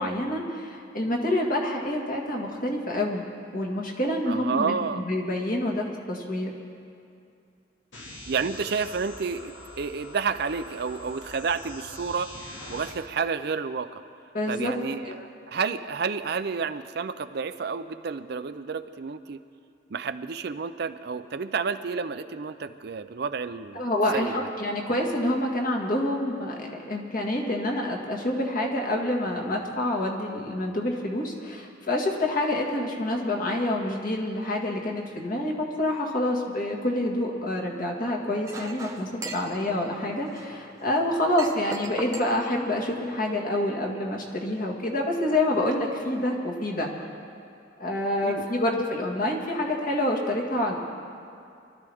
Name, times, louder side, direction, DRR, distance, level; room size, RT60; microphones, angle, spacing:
voice 1, 0.0-3.2 3.5-6.5 14.3-14.7 15.1-15.3 23.7-46.9 47.8-50.8, left 1 dB, 50° left, -1 dB, 1.9 m, -27 dB
voice 2, 4.2-5.0 8.3-12.3 12.7-14.0 14.5-15.1 15.5-19.4 19.9-23.9 24.1-24.4 48.2-48.4, right 5 dB, 60° right, 11 dB, 0.5 m, -30 dB
sound 1, 7.9-12.9, left 1 dB, 80° left, 2.2 m, -44 dB
Chink clink, 38.4-43.4, right 2 dB, 15° right, 0.9 m, -41 dB
24.0 x 13.0 x 3.5 m, 2.5 s
head